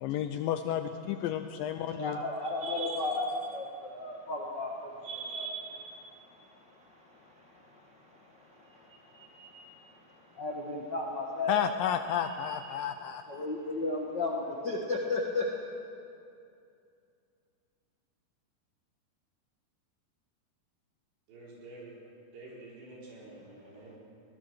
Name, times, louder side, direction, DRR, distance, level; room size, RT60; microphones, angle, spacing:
voice 1, 0.0-2.2 11.5-13.2, left 10 dB, 90° left, 8 dB, 2.0 m, -31 dB
voice 2, 1.9-11.5 12.2-12.8 13.3-15.5, left 2 dB, 60° left, -1 dB, 1.1 m, -36 dB
voice 3, 21.3-22.0 22.3-24.0, right 2 dB, 85° right, -5 dB, 6.9 m, -48 dB
23.0 x 19.0 x 6.3 m, 2.5 s
omnidirectional pair, 4.8 m